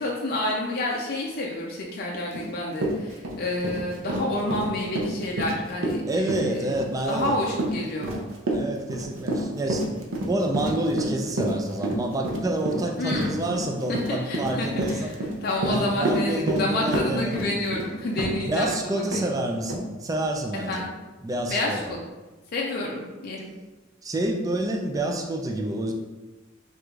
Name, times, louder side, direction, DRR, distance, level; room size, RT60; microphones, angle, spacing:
voice 1, 0.0-6.6 7.1-8.1 13.0-13.3 13.9-15.1 15.4-19.0 20.7-20.9 21.5-22.0 22.5-23.5, left 1 dB, 50° left, -2 dB, 0.4 m, -29 dB
Run, 2.3-2.5 2.8-18.7 19.1-19.2 19.7-19.8, right 1 dB, 75° right, 0.5 m, -29 dB
voice 2, 6.1-7.4 8.5-9.9 10.3-15.1 15.7-17.3 18.4-20.9 21.2-22.0 24.0-25.9, right 1 dB, 15° right, 2 dB, 0.3 m, -28 dB
4.5 x 2.4 x 2.3 m, 1.2 s
head